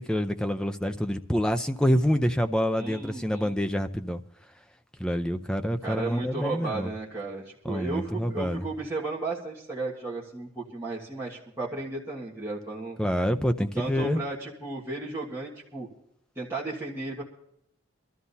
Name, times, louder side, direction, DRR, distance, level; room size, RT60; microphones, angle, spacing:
voice 1, 0.0-4.2 5.0-6.9 7.6-8.6 13.0-14.2, equal, 5° left, 7 dB, 0.5 m, -27 dB
voice 2, 2.8-3.6 5.8-13.0 13.7-15.9 16.3-17.2, right 3 dB, 10° right, -7 dB, 1.7 m, -34 dB
24.0 x 13.0 x 2.8 m, 0.78 s
head